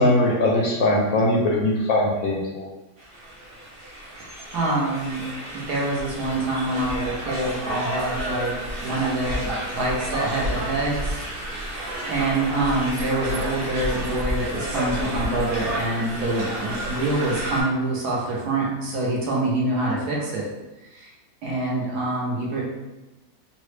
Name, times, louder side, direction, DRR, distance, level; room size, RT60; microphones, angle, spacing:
voice 1, 0.0-2.7, left 1 dB, 70° left, -2 dB, 0.9 m, -20 dB
sound 1, 3.0-17.6, right 1 dB, 40° right, 0.9 m, -31 dB
voice 2, 4.5-5.2 5.5-8.5 8.8-11.2 11.6-20.5 20.9-21.1 21.4-22.6, right 2 dB, 75° right, -4 dB, 1.3 m, -26 dB
3.9 x 2.0 x 3.2 m, 1.0 s
omnidirectional pair, 1.8 m